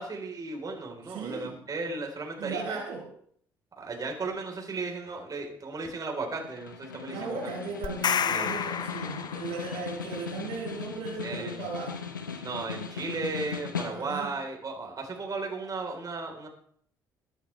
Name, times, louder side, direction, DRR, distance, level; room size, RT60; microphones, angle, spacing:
voice 1, 0.0-2.8 3.8-7.5 8.3-8.5 11.2-11.6 12.4-16.5, right 3 dB, 35° right, 2 dB, 4.3 m, -35 dB
voice 2, 1.0-1.5 2.4-3.0 7.1-12.1 13.9-14.3, right 5 dB, 65° right, -3 dB, 5.0 m, -37 dB
Snare drum, 6.4-14.3, left 6 dB, 90° left, 1.0 m, -38 dB
sound 1, 7.8-9.8, left 7 dB, 45° left, 0.8 m, -30 dB
22.5 x 9.0 x 3.4 m, 0.62 s
figure-of-eight pair, 50°, 10 cm